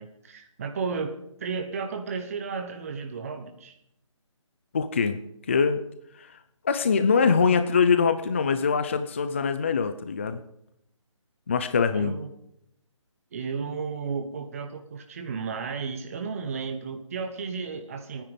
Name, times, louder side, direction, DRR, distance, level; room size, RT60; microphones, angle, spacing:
voice 1, 0.0-3.8 11.9-12.3 13.3-18.2, right 5 dB, 25° right, 4 dB, 1.2 m, -33 dB
voice 2, 4.7-5.2 5.5-5.9 6.1-6.4 6.6-10.4 11.5-12.2, left 5 dB, 25° left, 10 dB, 0.5 m, -23 dB
25.5 x 10.0 x 5.2 m, 0.76 s
hypercardioid pair, 170°, 16 cm